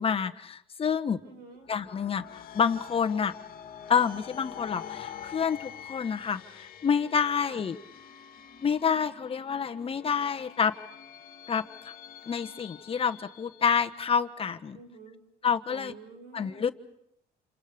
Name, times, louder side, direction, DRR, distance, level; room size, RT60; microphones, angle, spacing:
voice 1, 0.0-1.2 1.7-3.3 3.9-7.8 8.6-10.8 11.5-11.9 12.3-14.8 15.4-15.9 16.3-16.7, left 7 dB, 35° left, 8 dB, 1.3 m, -28 dB
voice 2, 1.2-1.7 7.4-7.6 14.7-15.2 15.7-16.7, right 4 dB, 75° right, 3 dB, 6.8 m, -49 dB
sound 1, 1.6-14.1, left 9 dB, 60° left, 1.8 m, -46 dB
29.0 x 28.0 x 5.2 m, 0.74 s
cardioid pair, 110°, 17 cm